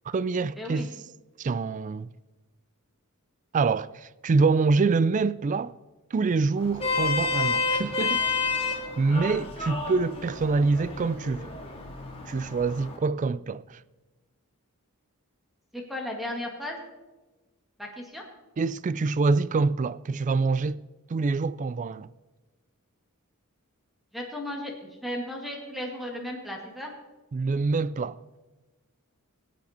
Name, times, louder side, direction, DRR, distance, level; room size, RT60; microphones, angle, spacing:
voice 1, 0.1-0.9 1.4-2.1 3.5-5.8 6.1-8.2 8.6-11.5 12.3-13.8 18.6-20.8 21.1-22.1 27.3-28.2, right 4 dB, 35° right, 0.3 m, -26 dB
voice 2, 0.6-0.9 15.7-16.8 17.8-18.2 24.1-26.9, left 1 dB, ahead, 2.0 m, -35 dB
Vehicle horn car horn honking, 6.6-13.0, left 4 dB, 25° left, 2.1 m, -30 dB
24.0 x 8.3 x 4.3 m
head